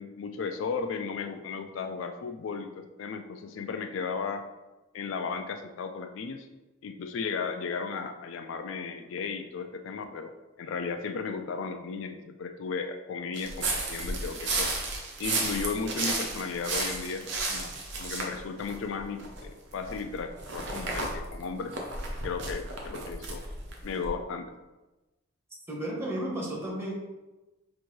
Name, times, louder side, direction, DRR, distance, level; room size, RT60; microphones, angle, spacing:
voice 1, 0.0-4.4 4.9-6.5 6.8-14.7 15.2-17.7 18.0-21.8 22.2-23.4 23.8-24.5, left 5 dB, 70° left, 7 dB, 0.3 m, -35 dB
sound 1, 13.4-19.5 19.8-24.1, right 3 dB, 60° right, 0.7 m, -33 dB
voice 2, 25.7-26.9, right 1 dB, 10° right, -3 dB, 0.9 m, -33 dB
5.9 x 2.6 x 3.1 m, 1.1 s
head